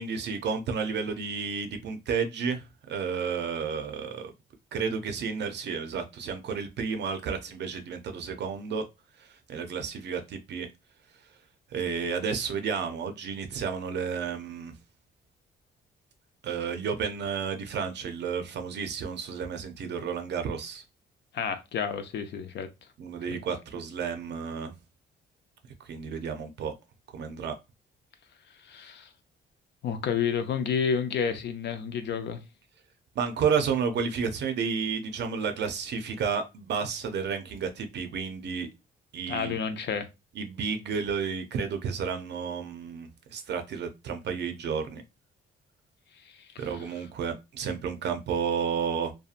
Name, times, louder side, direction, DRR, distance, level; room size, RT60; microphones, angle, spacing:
voice 1, 0.0-4.3 4.7-8.8 9.5-10.7 11.7-14.7 16.4-20.8 23.0-24.7 25.9-26.7 27.1-27.5 33.2-38.7 39.1-39.6 40.4-45.0 46.6-49.1, right 6 dB, 60° right, 0.5 m, -31 dB
voice 2, 21.3-22.7 23.3-23.4 28.6-29.1 29.8-32.4 39.3-40.1 46.2-46.9, left 7 dB, 60° left, 0.5 m, -30 dB
2.7 x 2.2 x 2.4 m
cardioid pair, 90°, 20 cm